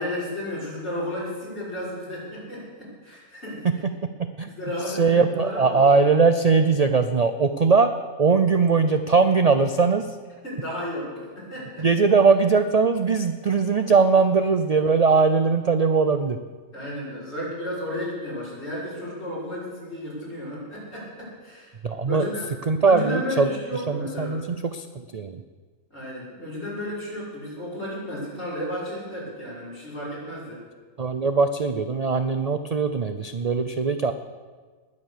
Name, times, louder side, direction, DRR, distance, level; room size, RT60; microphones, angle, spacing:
voice 1, 0.0-3.6 4.5-5.9 10.4-11.9 16.7-21.7 22.1-24.4 25.9-30.6, equal, 50° left, -7 dB, 6.3 m, -33 dB
voice 2, 4.2-4.5 4.9-7.9 8.2-10.0 11.8-16.4 21.8-22.2 22.7-23.5 23.9-24.9 25.1-25.4 31.0-34.1, right 4 dB, 45° right, 8 dB, 0.5 m, -20 dB
20.0 x 8.7 x 6.8 m, 1.4 s
omnidirectional pair, 1.4 m